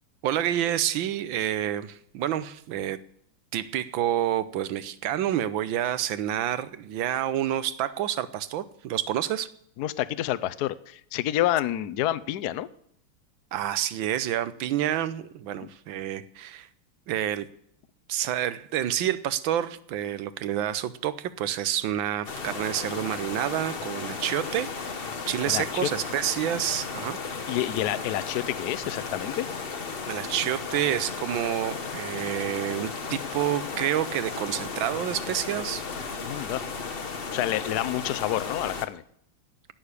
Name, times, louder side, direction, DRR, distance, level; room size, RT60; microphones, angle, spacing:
voice 1, 0.2-3.0 3.5-9.5 13.5-16.7 17.1-17.5 18.1-27.2 30.1-35.8, right 11 dB, 70° right, 15 dB, 1.4 m, -28 dB
voice 2, 9.8-12.7 15.6-15.7 25.4-25.9 27.5-29.5 36.2-36.6 37.3-39.0, left 13 dB, 65° left, 15 dB, 1.0 m, -28 dB
sound 1, 22.2-38.9, left 5 dB, 40° left, 0.9 m, -35 dB
17.0 x 6.7 x 9.8 m, 0.68 s
omnidirectional pair, 2.4 m